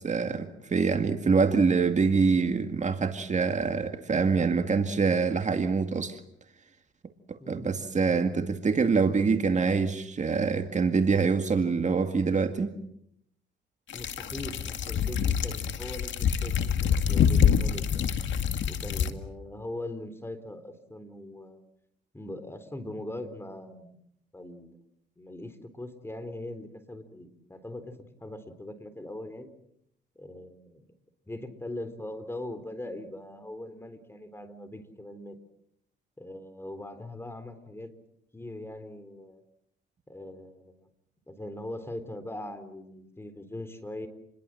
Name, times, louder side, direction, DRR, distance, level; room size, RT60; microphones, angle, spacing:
voice 1, 0.0-6.2 7.3-12.7, right 5 dB, 35° right, 7 dB, 2.1 m, -25 dB
sound 1, 13.9-19.1, left 8 dB, 70° left, 2.1 m, -26 dB
voice 2, 13.9-18.1 18.7-21.6 22.1-23.9 24.3-24.8 25.2-29.5 30.2-30.9 31.2-35.4 36.2-37.9 38.3-39.4 40.1-40.9 41.3-44.1, left 1 dB, 10° left, 12 dB, 3.9 m, -41 dB
29.0 x 21.5 x 7.8 m, 0.74 s
cardioid pair, 90°, 20 cm